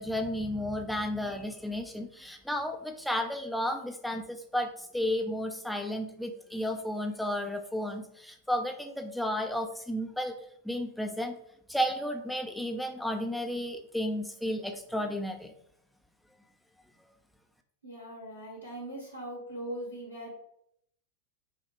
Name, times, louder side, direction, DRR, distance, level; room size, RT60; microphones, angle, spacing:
voice 1, 0.0-10.3 10.6-11.4 11.7-15.5, left 1 dB, ahead, 4 dB, 0.4 m, -33 dB
voice 2, 17.8-20.4, right 1 dB, 80° left, -3 dB, 1.6 m, -40 dB
6.0 x 2.1 x 3.2 m, 0.72 s
figure-of-eight pair, 90°, 0 cm